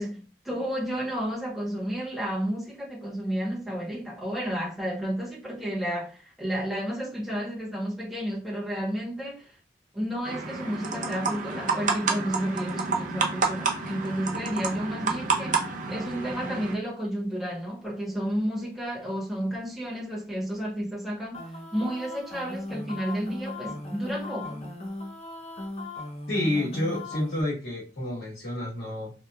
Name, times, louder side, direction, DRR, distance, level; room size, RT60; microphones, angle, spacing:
voice 1, 0.0-9.5 9.9-15.6 15.9-21.4 21.7-24.7, equal, ahead, 0.9 m, -31 dB
sound 1, 10.3-16.7, right 4 dB, 45° right, 0.5 m, -29 dB
sound 2, 21.3-27.4, left 2 dB, 35° left, 0.5 m, -37 dB
voice 2, 26.3-29.1, left 1 dB, 60° left, 1.3 m, -29 dB
2.8 x 2.2 x 2.3 m
head